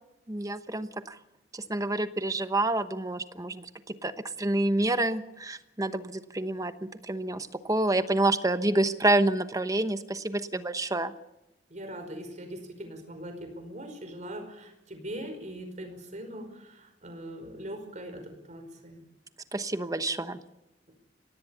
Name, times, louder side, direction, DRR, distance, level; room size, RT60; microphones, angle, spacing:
voice 1, 0.3-1.2 1.5-4.1 4.4-11.1 19.5-20.4, right 2 dB, 20° right, 11 dB, 1.0 m, -28 dB
voice 2, 11.7-19.0, right 1 dB, 45° right, 6 dB, 5.2 m, -41 dB
24.0 x 18.0 x 7.0 m, 0.92 s
head